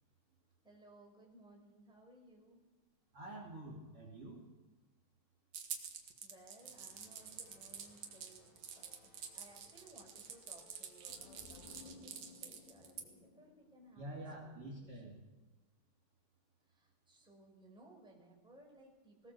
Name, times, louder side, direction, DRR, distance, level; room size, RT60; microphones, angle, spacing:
voice 1, 0.6-2.6 6.2-15.3 16.7-19.3, right 1 dB, ahead, -1 dB, 4.6 m, -61 dB
voice 2, 3.1-4.4 14.0-15.2, right 1 dB, 35° right, -2 dB, 3.3 m, -48 dB
sound 1, 5.5-13.0, right 8 dB, 55° right, 2.3 m, -48 dB
sound 2, 6.6-11.6, left 2 dB, 90° left, 8.8 m, -67 dB
sound 3, 11.0-14.7, left 4 dB, 70° left, 3.9 m, -59 dB
20.0 x 19.5 x 7.0 m, 1.2 s
omnidirectional pair, 5.2 m